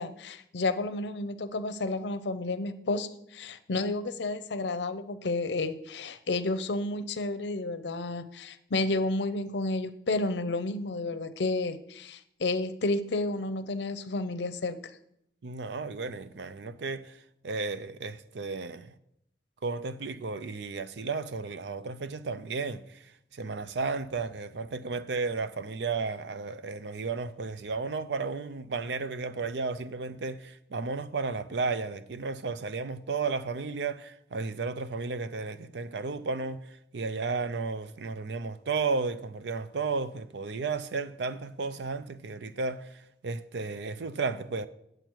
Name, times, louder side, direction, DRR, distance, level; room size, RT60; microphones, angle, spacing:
voice 1, 0.0-14.8, left 2 dB, 80° left, 0.6 m, -31 dB
voice 2, 15.4-17.2 17.4-18.9 19.6-23.0 23.3-36.6 36.9-42.9 43.2-44.7, right 4 dB, 80° right, 0.5 m, -33 dB
9.0 x 7.8 x 4.6 m
head